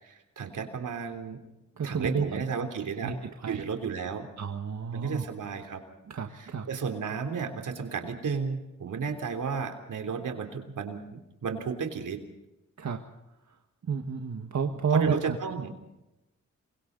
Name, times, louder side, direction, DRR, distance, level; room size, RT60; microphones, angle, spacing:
voice 1, 0.0-1.4 1.8-3.1 3.5-4.3 4.9-5.8 6.3-12.2 14.9-15.7, right 5 dB, 85° right, 5 dB, 3.4 m, -33 dB
voice 2, 1.8-2.6 3.0-3.6 4.4-5.3 6.1-6.7 12.8-13.0 13.9-15.4, right 6 dB, 60° right, 4 dB, 1.7 m, -30 dB
28.0 x 24.5 x 4.0 m, 0.97 s
cardioid pair, 80°, 30 cm